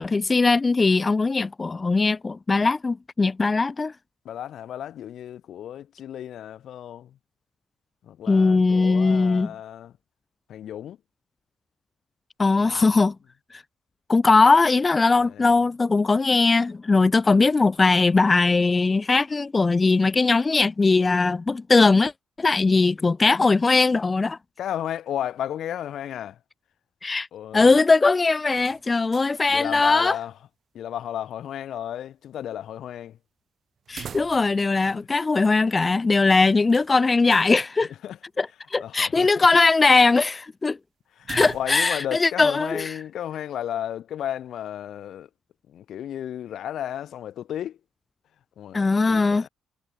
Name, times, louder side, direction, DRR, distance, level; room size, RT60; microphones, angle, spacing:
voice 1, 0.0-3.9 8.3-9.5 12.4-13.1 13.5-13.6 14.1-22.1 22.4-24.4 27.0-27.3 27.5-30.2 33.9-37.9 38.4-40.8 41.3-43.0 48.7-49.5, left 3 dB, 20° left, 0.6 m, -20 dB
voice 2, 4.2-7.2 8.0-9.9 10.5-11.0 12.5-13.0 15.2-15.5 24.6-26.4 27.3-27.8 29.5-30.3 30.7-33.2 34.9-35.0 38.0-38.2 38.8-39.5 41.1-45.3 45.7-47.8 48.6-49.5, left 10 dB, 65° left, 3.1 m, -34 dB
sound 1, 28.6-29.5 29.8-29.9 33.8-34.7 35.0-35.1 36.7-37.5 41.2-42.0, right 8 dB, 45° right, 5.3 m, -41 dB
cardioid pair, 140°, 0 cm